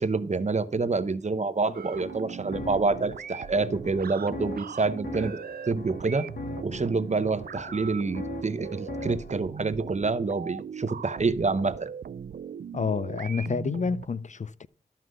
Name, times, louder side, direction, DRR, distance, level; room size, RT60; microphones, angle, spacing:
voice 1, 0.0-5.4 5.7-6.3 6.6-11.9, right 3 dB, 50° right, 0.8 m, -27 dB
sound 1, 1.7-9.4, left 2 dB, 80° left, 1.4 m, -41 dB
sound 2, 1.7-14.1, right 7 dB, 90° right, 0.4 m, -39 dB
voice 2, 12.7-14.7, left 5 dB, 50° left, 0.5 m, -29 dB
12.5 x 5.8 x 6.3 m
wide cardioid pair, 85°, 15 cm